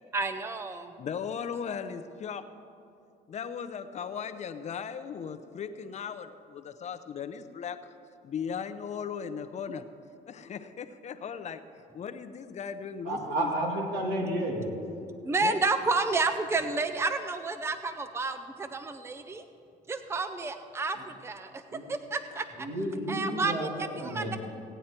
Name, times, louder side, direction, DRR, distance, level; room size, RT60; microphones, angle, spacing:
voice 1, 0.1-0.9 15.2-19.4 19.9-22.7 23.1-24.4, right 3 dB, 15° right, 10 dB, 0.5 m, -30 dB
voice 2, 1.0-2.4 3.3-7.9 8.2-9.8 10.3-11.6 11.9-13.8 15.4-15.6, left 7 dB, 40° left, 9 dB, 0.7 m, -37 dB
voice 3, 13.0-14.6 21.0-21.1 21.7-21.8 22.6-23.7 24.0-24.4, right 1 dB, 85° right, 0 dB, 2.4 m, -31 dB
17.0 x 9.1 x 4.4 m, 2.5 s
cardioid pair, 110°, 17 cm